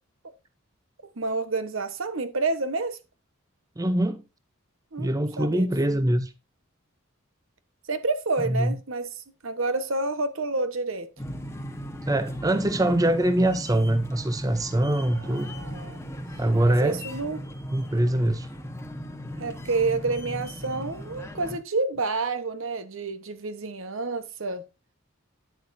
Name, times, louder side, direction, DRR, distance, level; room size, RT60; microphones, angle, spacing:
voice 1, 1.0-3.0 4.9-5.1 5.4-6.0 7.9-11.1 15.1-16.0 16.7-17.4 19.4-24.6, right 3 dB, 70° right, 1.1 m, -29 dB
voice 2, 3.8-4.2 5.0-6.3 8.4-8.7 12.0-15.5 16.4-17.0 17.7-18.5, right 1 dB, 15° right, 0.6 m, -23 dB
sound 1, 11.2-21.6, equal, 15° left, 1.2 m, -37 dB
10.0 x 8.6 x 2.6 m
head